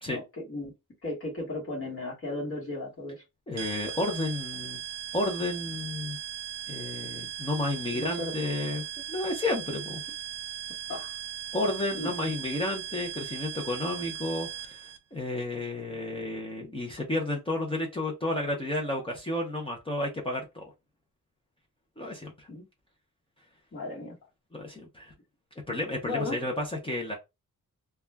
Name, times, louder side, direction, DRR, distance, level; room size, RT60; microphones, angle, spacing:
voice 1, 0.1-0.7 1.0-3.2 7.9-8.4 10.9-11.2 11.9-12.2 22.5-22.6 23.7-24.2 26.1-26.4, left 2 dB, 40° left, 1.3 m, -35 dB
voice 2, 3.5-4.8 5.1-6.2 6.7-10.0 11.5-20.7 22.0-22.5 24.5-25.1 25.7-27.2, left 1 dB, 15° left, 0.6 m, -32 dB
sound 1, 3.6-15.0, right 10 dB, 55° right, 0.5 m, -38 dB
2.4 x 2.2 x 3.2 m
wide cardioid pair, 165°, 34 cm